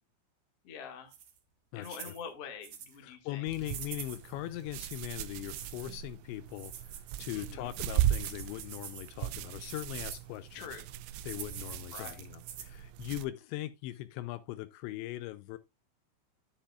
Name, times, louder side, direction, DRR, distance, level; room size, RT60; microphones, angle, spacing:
voice 1, 0.6-1.1 1.7-3.4 7.3-7.7 10.5-10.8 11.9-12.2, left 7 dB, 55° left, 1.7 m, -45 dB
sound 1, 1.1-1.4 1.8-2.2 2.6-3.0 3.6-4.3 4.8-5.9 6.5-7.2 7.9-9.1 9.7-10.2 11.1-12.8, right 9 dB, 65° right, 2.1 m, -46 dB
voice 2, 1.7-2.1 3.0-10.7 11.2-15.6, left 15 dB, 80° left, 2.8 m, -40 dB
sound 2, 3.5-13.3, right 12 dB, 85° right, 3.0 m, -37 dB
10.0 x 8.9 x 2.3 m
omnidirectional pair, 5.4 m